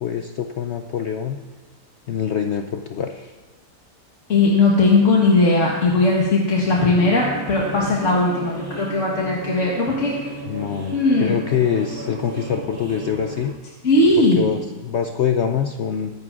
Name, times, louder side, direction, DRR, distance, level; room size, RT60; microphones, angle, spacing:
voice 1, 0.0-1.4 2.1-3.3 10.5-13.5 14.2-16.1, left 8 dB, 70° left, 6 dB, 0.6 m, -24 dB
voice 2, 4.3-10.2 10.9-11.3 13.8-14.4, left 2 dB, 50° left, -3 dB, 1.6 m, -18 dB
sound 1, 6.7-13.5, right 2 dB, 45° right, 2.2 m, -34 dB
23.0 x 10.5 x 2.5 m, 1.3 s
omnidirectional pair, 1.7 m